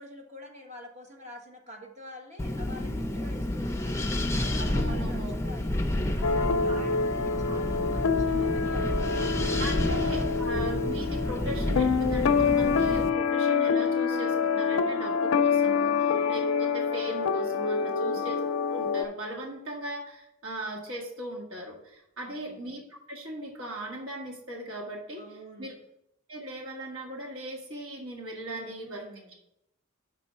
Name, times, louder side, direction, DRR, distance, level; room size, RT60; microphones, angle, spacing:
voice 1, 0.0-4.1 4.4-5.8 6.1-10.1 15.9-16.3 17.9-18.3 22.2-22.6 25.2-25.7 28.5-29.3, equal, 35° right, 2 dB, 1.3 m, -47 dB
Wind, 2.4-13.1, left 1 dB, 15° left, 0.5 m, -30 dB
voice 2, 4.7-5.4 9.6-18.4 18.7-25.7 26.3-29.3, right 1 dB, 70° right, -1 dB, 1.4 m, -38 dB
sound 1, 6.2-19.0, left 5 dB, 80° left, 0.4 m, -26 dB
6.4 x 4.3 x 5.4 m, 0.83 s
head